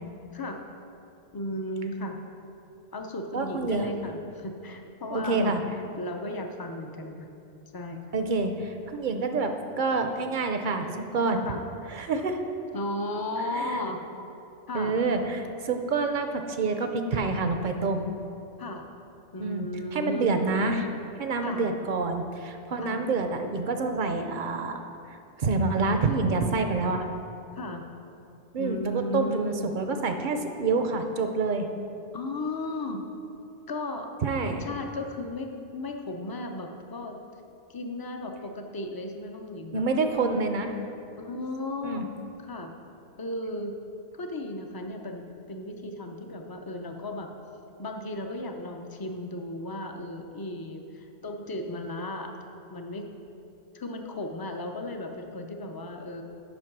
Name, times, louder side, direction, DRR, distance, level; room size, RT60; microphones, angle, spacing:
voice 1, 1.3-2.2 2.9-5.5 6.0-7.3 7.7-8.1 11.4-11.6 12.7-14.0 14.7-15.0 18.6-19.1 19.3-20.4 21.4-21.7 22.8-23.0 27.6-27.9 28.6-29.7 32.1-33.1 33.7-34.1 34.4-37.2 37.7-40.4 41.2-42.1 42.4-42.7 43.2-43.8 44.1-47.3 47.8-52.3 52.7-53.0 53.7-56.2, left 1 dB, 35° left, 4 dB, 0.3 m, -35 dB
voice 2, 3.3-3.9 5.1-5.6 8.1-10.9 11.1-11.5 11.9-12.4 13.5-13.8 14.7-18.1 19.4-20.9 21.2-24.9 25.4-27.1 28.5-31.7 34.2-34.6 39.7-40.7 41.8-42.0, right 3 dB, 55° right, 6 dB, 0.6 m, -27 dB
7.7 x 5.4 x 5.9 m, 2.7 s
omnidirectional pair, 1.2 m